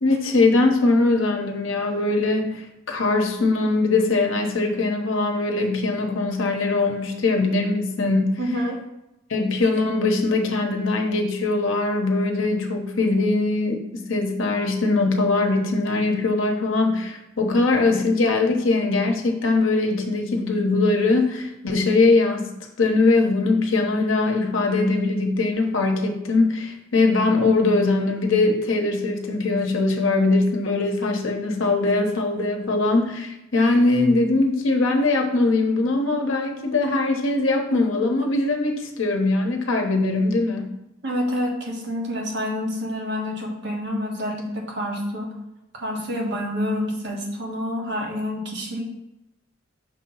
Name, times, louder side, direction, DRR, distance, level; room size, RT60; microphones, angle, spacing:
voice 1, 0.0-8.4 9.3-22.5 22.8-40.7, left 3 dB, 80° left, 3 dB, 1.0 m, -21 dB
voice 2, 8.4-8.8 41.0-45.3 45.7-48.8, left 1 dB, 60° right, -1 dB, 1.3 m, -28 dB
6.0 x 2.8 x 5.6 m, 0.89 s
head